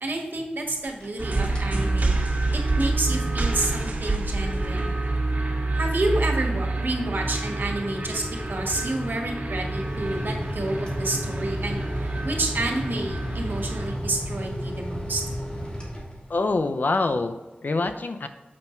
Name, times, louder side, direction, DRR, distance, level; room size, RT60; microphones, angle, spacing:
voice 1, 0.0-2.2 2.5-4.9 5.7-11.8 12.2-15.2, right 2 dB, 70° right, 1 dB, 1.6 m, -29 dB
sound 1, 0.7-1.2 1.5-1.8 2.3-16.6, equal, 30° left, 2.3 m, -35 dB
sound 2, 1.2-14.0, right 2 dB, 50° right, 1.8 m, -27 dB
voice 2, 16.3-18.3, left 3 dB, 60° left, 8 dB, 0.5 m, -25 dB
7.6 x 5.5 x 4.5 m, 1.1 s
wide cardioid pair, 60°, 3 cm